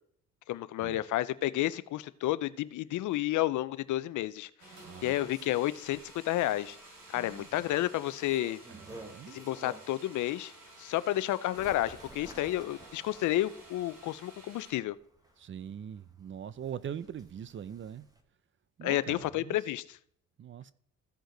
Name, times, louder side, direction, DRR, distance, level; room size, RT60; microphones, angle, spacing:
voice 1, 0.5-4.5 5.0-6.8 7.1-8.6 9.3-10.5 10.8-15.0 18.8-19.8, left 15 dB, 75° left, 0.5 m, -31 dB
sound 1, 4.6-14.7, right 2 dB, 75° right, 3.3 m, -53 dB
Bird, 4.7-10.1 10.5-18.2, right 1 dB, 10° right, 1.2 m, -54 dB
voice 2, 4.8-5.3 7.2-7.6 8.7-9.4 15.4-18.1 18.8-19.6 20.4-20.7, right 9 dB, 40° right, 0.5 m, -42 dB
15.0 x 5.1 x 3.9 m
cardioid pair, 90°, 30 cm